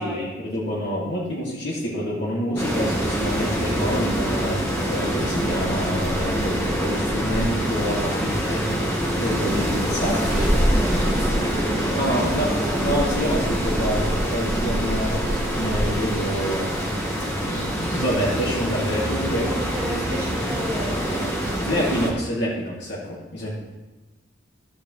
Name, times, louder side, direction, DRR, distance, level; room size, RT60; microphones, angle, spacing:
voice 1, 0.0-4.6 4.9-8.7 9.2-10.4 11.8-16.7 17.4-19.7 21.7-23.5, equal, 65° left, -6 dB, 2.4 m, -27 dB
sound 1, 2.6-22.1, equal, 15° left, 1.6 m, -24 dB
voice 2, 9.8-13.0 19.5-21.6, equal, 10° right, -7 dB, 2.5 m, -34 dB
13.0 x 8.5 x 3.3 m, 1.2 s
head